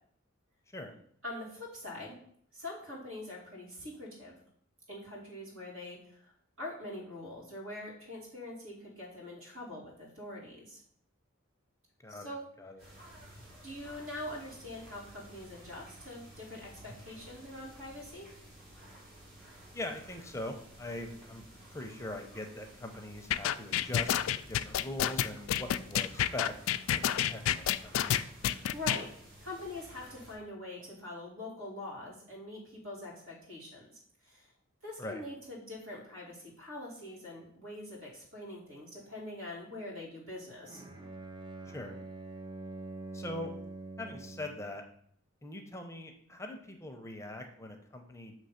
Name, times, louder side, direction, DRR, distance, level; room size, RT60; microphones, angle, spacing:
voice 1, 1.2-2.2 2.5-4.4 4.9-6.3 6.6-10.8 12.1-12.5 13.6-18.3 28.3-29.1 29.4-33.9 34.2-34.5 34.8-40.8, left 1 dB, 75° right, -4 dB, 2.7 m, -44 dB
voice 2, 12.0-12.8 19.7-21.4 21.7-26.6 26.9-28.1 35.0-35.2 41.7-41.9 43.1-43.5 44.0-44.8 45.4-48.3, left 1 dB, 15° left, 4 dB, 0.6 m, -42 dB
sound 1, 12.8-30.3, right 1 dB, 50° right, 2.8 m, -53 dB
sound 2, 23.3-29.0, left 11 dB, 80° left, 0.3 m, -29 dB
Bowed string instrument, 40.6-44.7, right 2 dB, 20° right, 0.6 m, -45 dB
6.3 x 3.1 x 5.7 m, 0.64 s
head